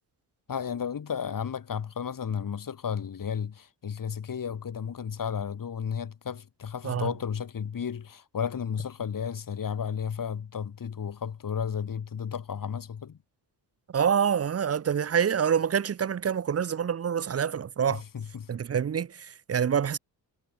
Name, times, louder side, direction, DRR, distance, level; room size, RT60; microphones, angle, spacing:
voice 1, 0.5-13.2 17.9-18.5, left 7 dB, 50° left, 2.2 m, -33 dB
voice 2, 13.9-18.0 18.5-20.0, right 8 dB, 35° right, 0.7 m, -26 dB
cardioid pair, 90°, 44 cm